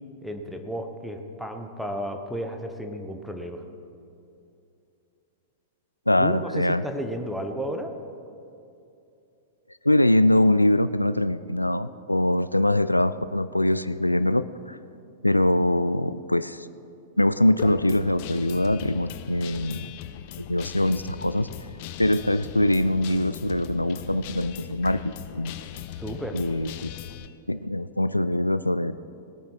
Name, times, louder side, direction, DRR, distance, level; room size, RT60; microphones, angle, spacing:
voice 1, 0.2-3.6 6.2-7.9 26.0-26.4, equal, ahead, 4 dB, 1.2 m, -33 dB
voice 2, 6.1-6.8 9.8-14.8 15.2-16.7 17.2-20.0 20.4-21.5 22.0-25.0 25.3-25.5 26.3-26.9 27.5-28.9, left 1 dB, 85° left, 14 dB, 0.3 m, -23 dB
Guitar, 17.6-27.3, left 11 dB, 45° left, 0.6 m, -39 dB
20.0 x 9.0 x 4.8 m, 2.7 s
figure-of-eight pair, 100°, 0 cm